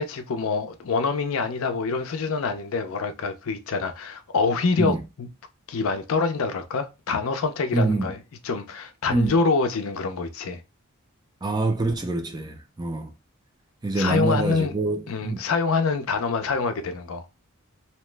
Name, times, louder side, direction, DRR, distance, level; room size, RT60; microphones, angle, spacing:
voice 1, 0.0-5.3 5.7-8.2 8.4-10.6 13.9-14.7 15.1-17.3, left 4 dB, 70° left, 0.5 m, -26 dB
voice 2, 7.7-8.1 9.1-9.3 11.4-13.1 13.8-15.4, right 2 dB, 20° right, 0.4 m, -25 dB
2.8 x 2.1 x 3.2 m
head